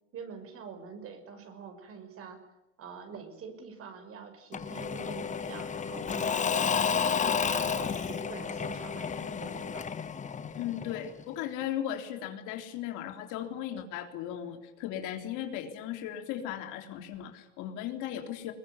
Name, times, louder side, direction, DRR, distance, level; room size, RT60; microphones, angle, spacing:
voice 1, 0.1-2.4 2.8-6.8 7.1-9.9, right 5 dB, 40° right, 7 dB, 6.0 m, -45 dB
Engine / Mechanisms / Drill, 4.5-11.2, left 6 dB, 20° left, 1.4 m, -31 dB
voice 2, 10.5-18.5, left 11 dB, 55° left, 6 dB, 3.5 m, -37 dB
22.0 x 20.0 x 9.6 m, 0.96 s
supercardioid pair, 115°, 36 cm